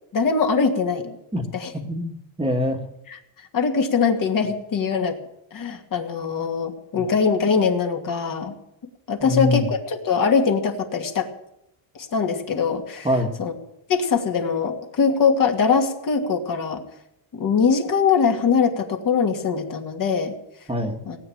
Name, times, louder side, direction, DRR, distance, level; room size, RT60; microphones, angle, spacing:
voice 1, 0.1-1.2 1.5-1.7 3.5-5.2 5.5-8.5 9.1-11.3 12.1-13.1 13.4-13.5 13.9-16.8 17.3-20.3 21.1-21.2, left 5 dB, 40° left, 3 dB, 2.6 m, -22 dB
voice 2, 1.9-2.8 6.9-7.0 9.2-9.7 13.0-13.3 20.7-21.0, left 1 dB, 10° right, 3 dB, 1.7 m, -24 dB
18.5 x 8.7 x 9.0 m, 0.81 s
cardioid pair, 140°, 48 cm